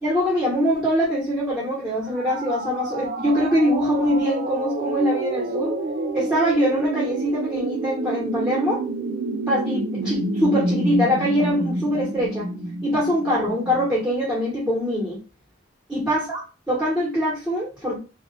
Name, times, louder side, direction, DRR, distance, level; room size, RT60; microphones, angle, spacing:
voice 1, 0.0-5.7 6.1-8.8 9.5-12.5 12.8-15.2 15.9-16.4 16.7-18.0, equal, 5° right, -6 dB, 1.2 m, -23 dB
sound 1, 2.1-13.9, right 2 dB, 55° right, 0.3 m, -28 dB
3.5 x 2.4 x 3.3 m, 0.32 s
head